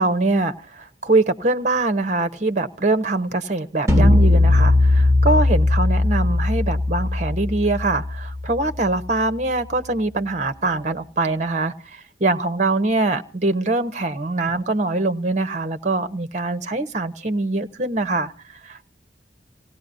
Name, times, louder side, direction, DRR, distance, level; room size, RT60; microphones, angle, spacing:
voice 1, 0.0-11.7 12.2-18.3 18.6-18.9, right 2 dB, 40° right, 0.9 m, -23 dB
sound 1, 3.9-9.2, left 2 dB, 15° right, 2.1 m, -18 dB
28.0 x 17.0 x 2.6 m
head